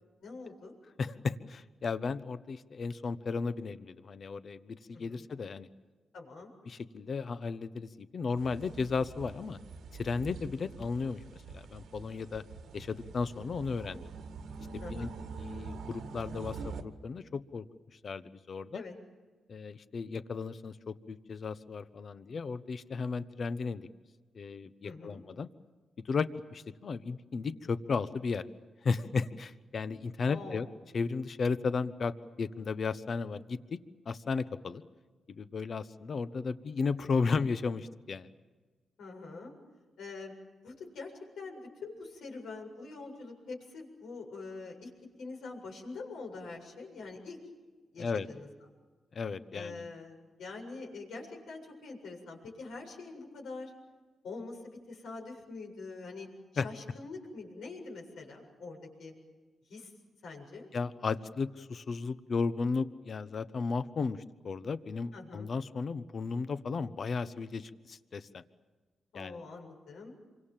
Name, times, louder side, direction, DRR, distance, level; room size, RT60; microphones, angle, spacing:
voice 1, 0.2-0.8 4.9-5.3 6.1-6.5 14.8-15.2 18.7-18.9 24.8-25.2 30.3-30.7 39.0-39.5 40.0-40.3 40.6-44.9 45.2-47.4 47.9-48.5 49.5-53.7 54.2-56.3 56.5-59.1 59.7-59.9 60.2-60.7 65.1-65.5 69.1-70.1, left 3 dB, 90° left, 1 dB, 7.5 m, -44 dB
voice 2, 1.0-5.7 6.7-9.6 9.9-11.2 11.5-12.4 12.7-14.1 14.7-15.1 15.4-17.6 18.0-18.8 19.5-23.9 24.3-25.5 26.0-28.4 28.8-30.7 30.9-33.8 34.1-34.8 35.4-38.3 48.0-48.3 49.1-49.9 56.6-56.7 60.7-68.4 69.1-69.4, left 4 dB, 50° left, 13 dB, 1.1 m, -34 dB
sound 1, 8.4-16.8, right 5 dB, 85° right, 2.0 m, -45 dB
28.0 x 25.0 x 7.5 m, 1.3 s
cardioid pair, 105°, 0 cm